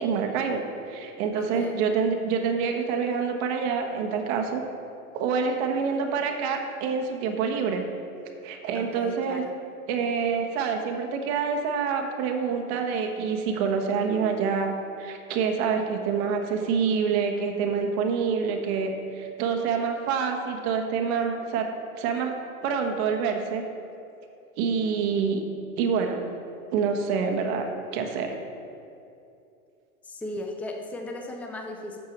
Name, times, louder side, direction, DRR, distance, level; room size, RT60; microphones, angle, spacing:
voice 1, 0.0-4.6 5.1-7.8 8.4-9.4 9.9-21.7 22.0-22.3 22.6-23.6 24.6-25.4 25.8-26.2 26.7-28.4, right 6 dB, 50° right, 3 dB, 1.3 m, -27 dB
voice 2, 1.4-1.7 8.7-9.4 30.0-32.0, left 1 dB, 5° left, 2 dB, 0.6 m, -36 dB
6.9 x 6.3 x 7.2 m, 2.6 s
hypercardioid pair, 125°, 42 cm